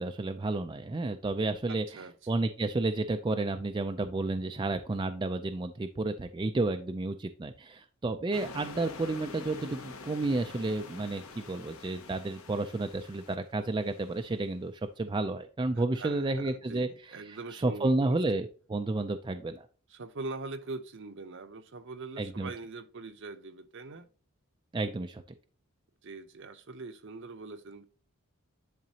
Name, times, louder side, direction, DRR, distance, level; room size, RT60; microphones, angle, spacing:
voice 1, 0.0-1.8 2.3-16.9 17.5-19.7 22.2-22.5 24.7-25.2, right 2 dB, 20° right, 0.3 m, -31 dB
voice 2, 1.7-2.3 15.7-18.2 19.9-24.1 26.0-27.8, right 3 dB, 55° right, 0.7 m, -42 dB
sound 1, 8.3-14.5, left 3 dB, 75° left, 1.0 m, -47 dB
10.5 x 3.9 x 2.8 m
head